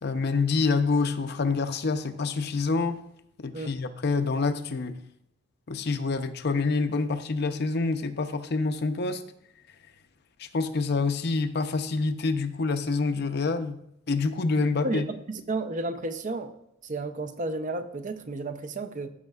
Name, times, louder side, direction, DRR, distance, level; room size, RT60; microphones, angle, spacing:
voice 1, 0.0-3.0 3.4-5.0 5.7-9.2 10.4-13.8 14.1-15.0, left 4 dB, 50° left, 9 dB, 0.6 m, -27 dB
voice 2, 14.8-16.5 16.8-19.1, right 2 dB, 40° right, 9 dB, 0.5 m, -32 dB
14.5 x 6.5 x 2.4 m, 0.76 s
head